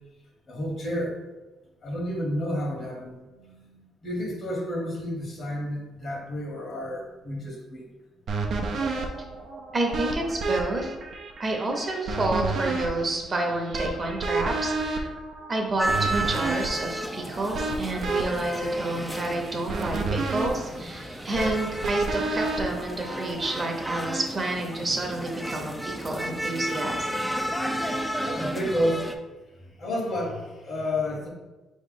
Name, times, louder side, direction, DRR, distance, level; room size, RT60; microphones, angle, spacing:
voice 1, 0.5-1.1 1.8-7.9 28.2-29.0 29.8-31.3, equal, 55° left, 0 dB, 1.4 m, -30 dB
sound 1, 8.3-23.5, right 3 dB, 65° right, 0.6 m, -31 dB
voice 2, 9.7-10.9 11.4-15.1 15.5-27.1, right 2 dB, 35° right, 1 dB, 0.9 m, -29 dB
sound 2, 15.8-29.1, right 1 dB, 5° left, 0.5 m, -32 dB
4.4 x 3.1 x 3.9 m, 1.1 s
cardioid pair, 90°, 0 cm